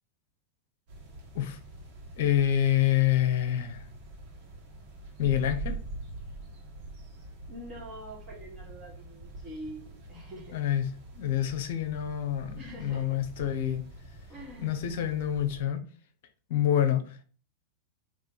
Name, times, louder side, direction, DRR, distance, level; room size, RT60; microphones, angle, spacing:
sound 1, 0.9-15.6, right 2 dB, 50° right, 1.3 m, -44 dB
voice 1, 2.2-3.8 5.2-5.8 10.5-13.8 14.6-15.8 16.5-17.2, left 11 dB, 60° left, 8 dB, 0.6 m, -27 dB
voice 2, 7.5-10.6 12.5-13.2 14.3-14.8, right 1 dB, 30° right, -4 dB, 1.6 m, -45 dB
3.6 x 2.5 x 3.8 m, 0.40 s
figure-of-eight pair, 90°, 0 cm